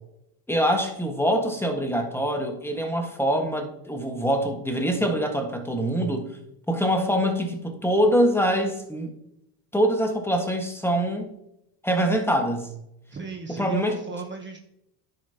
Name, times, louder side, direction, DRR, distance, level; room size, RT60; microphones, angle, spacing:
voice 1, 0.5-6.3 6.7-9.1 9.7-11.3 11.8-12.7 13.5-14.0, equal, 5° left, 4 dB, 1.5 m, -24 dB
voice 2, 13.1-14.6, right 3 dB, 20° right, 3 dB, 1.1 m, -36 dB
10.5 x 6.8 x 2.9 m, 0.80 s
supercardioid pair, 95°, 50 cm